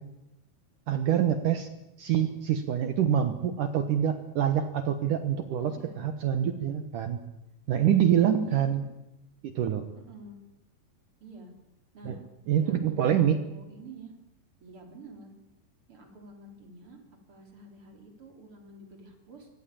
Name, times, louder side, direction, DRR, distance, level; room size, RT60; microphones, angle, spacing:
voice 1, 0.9-1.7 2.0-7.2 7.7-8.8 9.4-9.8 12.1-12.2 12.5-13.4, right 9 dB, 65° right, 8 dB, 2.1 m, -26 dB
voice 2, 5.6-6.0 7.9-8.9 9.9-10.4 11.2-11.5 11.9-12.2 12.6-14.1 14.6-15.3 15.9-17.0 17.3-19.5, right 1 dB, 30° right, 3 dB, 4.2 m, -48 dB
24.0 x 17.5 x 8.7 m, 0.92 s
omnidirectional pair, 5.1 m